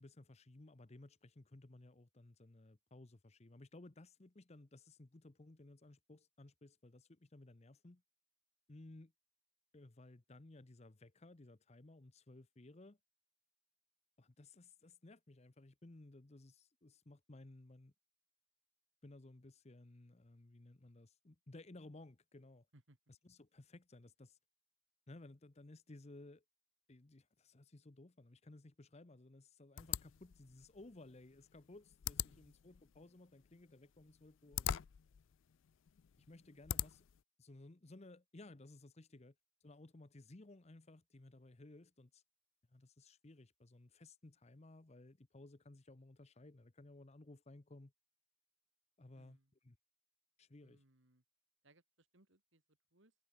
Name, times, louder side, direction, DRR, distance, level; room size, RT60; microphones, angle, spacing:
voice 1, 0.0-8.0 8.7-9.1 9.7-13.0 14.2-17.9 19.0-22.7 23.2-24.4 25.1-26.4 26.9-34.7 36.3-37.0 37.4-39.3 39.6-42.2 42.7-47.9 49.0-49.4 49.6-49.8 50.4-50.8, left 2 dB, 30° left, 0.8 m, -58 dB
sound 1, 29.8-37.2, left 11 dB, 65° left, 0.4 m, -44 dB
voice 2, 32.2-32.6 49.1-49.5 50.6-51.2 51.6-53.2, right 1 dB, 60° right, 2.6 m, -70 dB
head